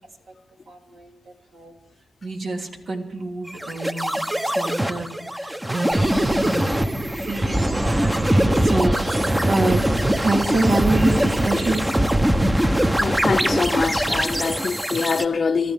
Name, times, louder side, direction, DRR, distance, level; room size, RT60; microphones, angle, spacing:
voice 1, 0.7-1.7 2.2-6.7 7.2-9.8 10.1-11.8, right 2 dB, 70° right, 3.1 m, -27 dB
sound 1, 3.5-15.2, right 1 dB, 15° right, 1.0 m, -22 dB
sound 2, 5.9-11.9, right 2 dB, 40° right, 6.0 m, -33 dB
voice 2, 13.0-15.7, left 5 dB, 50° left, 0.7 m, -24 dB
24.0 x 13.5 x 3.6 m
cardioid pair, 65°, 0 cm